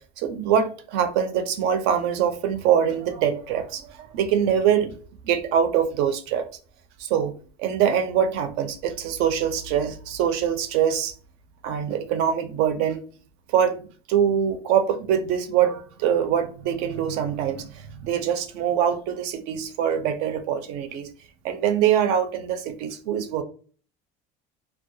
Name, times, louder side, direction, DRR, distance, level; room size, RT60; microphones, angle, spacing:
voice 1, 0.2-4.9 5.2-6.4 7.0-7.3 7.6-11.1 11.6-13.0 13.5-21.1 21.4-23.4, right 8 dB, 60° right, 0.5 m, -24 dB
2.3 x 2.1 x 2.6 m
cardioid pair, 170°, 19 cm